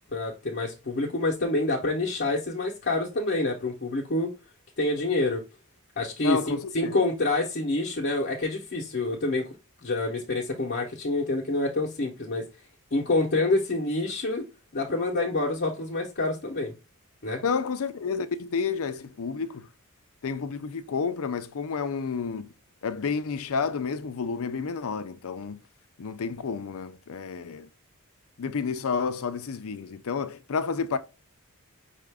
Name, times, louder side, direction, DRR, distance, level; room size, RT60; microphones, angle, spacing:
voice 1, 0.1-4.3 4.8-5.4 6.0-9.5 9.8-12.5 12.9-14.5 14.7-16.7 17.2-17.4, left 2 dB, 50° left, 0.9 m, -27 dB
voice 2, 6.2-6.9 17.4-19.7 20.2-22.5 22.8-25.6 26.0-27.7 28.4-31.0, left 5 dB, 65° left, 0.5 m, -30 dB
5.5 x 2.5 x 3.4 m
head